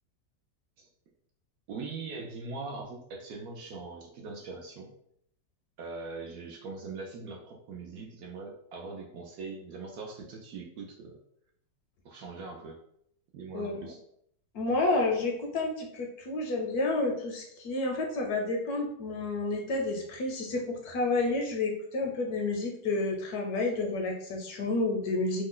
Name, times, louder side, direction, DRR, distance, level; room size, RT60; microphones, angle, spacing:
voice 1, 1.7-4.9 5.8-11.2 12.0-12.8 13.3-14.0, right 4 dB, 70° right, 0 dB, 0.9 m, -41 dB
voice 2, 13.5-13.9 14.5-25.4, left 2 dB, 70° left, 1 dB, 1.0 m, -30 dB
3.0 x 2.1 x 3.7 m, 0.70 s
omnidirectional pair, 1.9 m